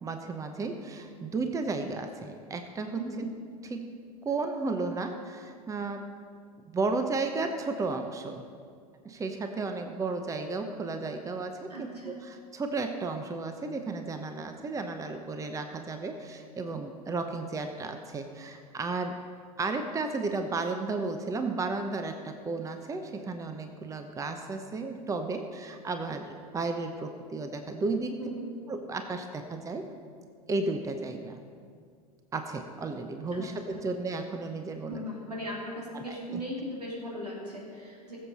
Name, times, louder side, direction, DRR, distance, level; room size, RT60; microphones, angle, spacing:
voice 1, 0.0-3.3 3.6-4.0 4.2-6.0 6.7-8.4 9.0-19.2 19.6-28.2 28.7-29.9 30.5-31.4 32.3-35.0 35.9-36.4, right 3 dB, 15° right, 6 dB, 0.9 m, -33 dB
voice 2, 2.9-3.2 11.7-12.2 28.2-28.5 33.3-33.8 34.9-38.2, equal, 85° right, -3 dB, 3.3 m, -38 dB
20.5 x 7.6 x 4.2 m, 2.1 s
figure-of-eight pair, 85°, 20 cm